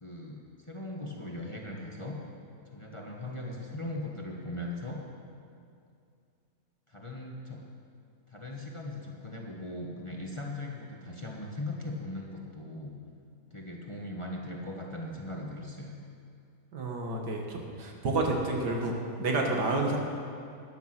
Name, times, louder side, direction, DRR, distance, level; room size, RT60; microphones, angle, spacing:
voice 1, 0.0-2.2 2.7-5.0 6.9-7.6 8.3-13.0 13.5-16.0, left 1 dB, 20° left, -1 dB, 1.2 m, -39 dB
voice 2, 16.7-20.0, right 2 dB, 80° right, 1 dB, 2.2 m, -30 dB
14.0 x 10.5 x 6.0 m, 2.4 s
omnidirectional pair, 1.8 m